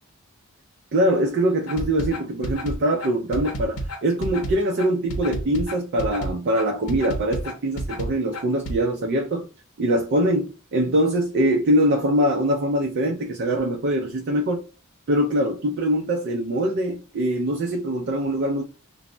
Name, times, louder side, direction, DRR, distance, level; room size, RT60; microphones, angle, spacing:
voice 1, 0.9-9.5 9.8-14.6 15.1-18.6, right 1 dB, 50° right, 0.4 m, -23 dB
sound 1, 1.7-8.8, right 1 dB, 80° left, 0.7 m, -30 dB
2.1 x 2.0 x 3.6 m
head